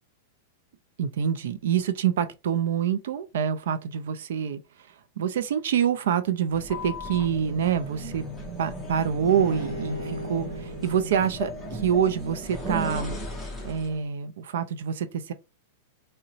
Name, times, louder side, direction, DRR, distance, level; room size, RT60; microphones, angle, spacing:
voice 1, 1.0-4.6 4.9-8.2 8.6-13.2 13.6-15.3, right 8 dB, 70° right, 0.4 m, -26 dB
sound 1, 6.5-14.0, equal, 5° left, 0.7 m, -36 dB
Bowed string instrument, 9.3-12.6, equal, 40° right, 1.0 m, -38 dB
3.8 x 2.1 x 2.7 m
supercardioid pair, 170°, 0 cm